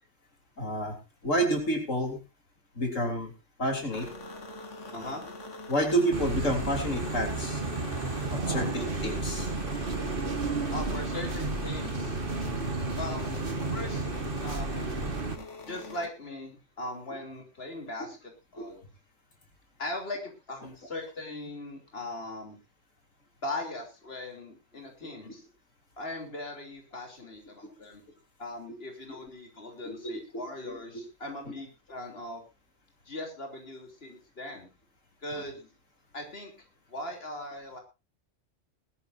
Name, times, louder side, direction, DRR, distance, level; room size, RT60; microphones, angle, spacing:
voice 1, 0.6-0.9 1.2-2.2 2.8-3.3 3.6-4.1 5.7-7.6 8.3-9.5 18.6-18.7 25.2-25.3 29.8-29.9 30.3-30.4 31.5-31.6 35.4-35.5, right 1 dB, 90° left, 3 dB, 3.7 m, -29 dB
sound 1, 3.9-16.1, left 3 dB, 75° left, 2.2 m, -43 dB
voice 2, 4.9-5.2 8.4-8.7 10.7-12.2 13.0-13.3 13.7-14.1 14.4-14.9 15.7-18.8 19.8-22.6 23.4-25.4 26.0-28.0 28.4-32.4 33.1-34.7 35.2-35.7 36.1-36.5 36.9-37.8, left 1 dB, 50° left, 3 dB, 3.5 m, -39 dB
sound 2, 6.1-15.4, right 3 dB, 45° right, 1.8 m, -32 dB
20.0 x 13.0 x 2.6 m, 0.27 s
omnidirectional pair, 1.3 m